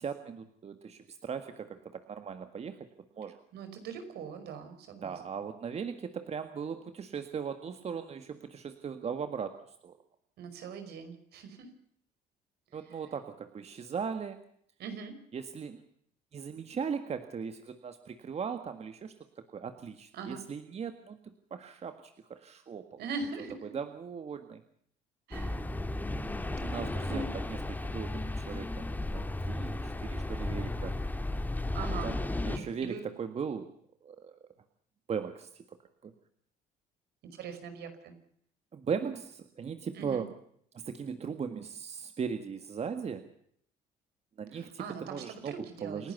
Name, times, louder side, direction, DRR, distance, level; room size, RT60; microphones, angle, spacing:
voice 1, 0.0-2.9 3.2-3.4 5.0-9.6 9.8-9.9 12.7-14.4 15.3-15.8 16.3-19.1 19.5-21.2 21.5-23.0 23.7-24.6 26.6-27.3 27.7-30.9 32.0-32.2 32.5-33.7 34.0-34.4 35.1-35.8 36.0-36.1 38.7-40.3 40.8-43.2 44.4-45.6 45.8-46.1, right 6 dB, 40° right, 8 dB, 1.8 m, -38 dB
voice 2, 3.5-5.4 10.4-11.7 12.7-13.0 14.8-15.2 20.1-20.4 23.0-23.8 25.3-25.6 26.9-27.3 31.7-32.2 32.5-33.1 37.2-38.1 39.9-40.3 44.5-46.1, right 5 dB, 75° right, 9 dB, 5.4 m, -41 dB
sound 1, 25.3-32.6, left 2 dB, 10° left, 2.6 m, -34 dB
29.0 x 11.5 x 8.2 m, 0.65 s
cardioid pair, 110°, 17 cm